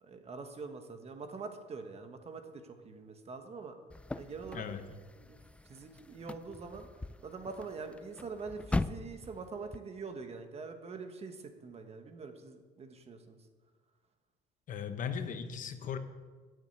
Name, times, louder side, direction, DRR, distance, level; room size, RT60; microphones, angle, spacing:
voice 1, 0.0-3.7 4.1-4.7 5.2-5.4 5.6-6.9 7.2-13.4, right 4 dB, 40° right, 6 dB, 1.3 m, -44 dB
sound 1, 3.9-9.8, left 2 dB, 5° left, 0.3 m, -40 dB
voice 2, 4.5-4.9 14.7-16.0, left 7 dB, 50° left, 9 dB, 0.9 m, -37 dB
9.0 x 7.4 x 7.8 m, 1.4 s
cardioid pair, 110°, 17 cm